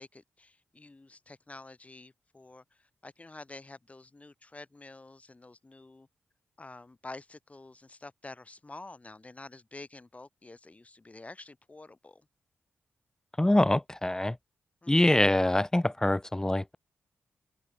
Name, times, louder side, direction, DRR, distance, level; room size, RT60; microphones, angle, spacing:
voice 1, 0.0-6.1 6.6-12.3 14.8-14.9, left 2 dB, 30° left, 4.4 m, -48 dB
voice 2, 13.4-14.4 14.9-16.8, left 1 dB, 15° left, 1.3 m, -24 dB
open air
cardioid pair, 60°, 5 cm